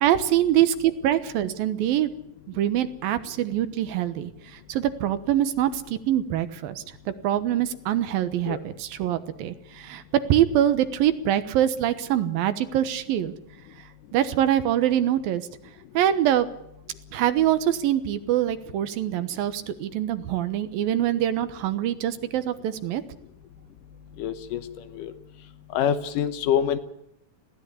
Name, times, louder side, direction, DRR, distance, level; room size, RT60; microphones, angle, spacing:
voice 1, 0.0-2.1 2.6-10.0 10.3-13.3 14.1-15.4 15.9-16.5 17.1-23.0, right 11 dB, 85° right, 11 dB, 3.0 m, -24 dB
voice 2, 24.2-24.6 25.0-25.1 25.7-26.8, left 9 dB, 75° left, 12 dB, 2.6 m, -25 dB
20.0 x 16.0 x 9.9 m, 0.77 s
omnidirectional pair, 4.0 m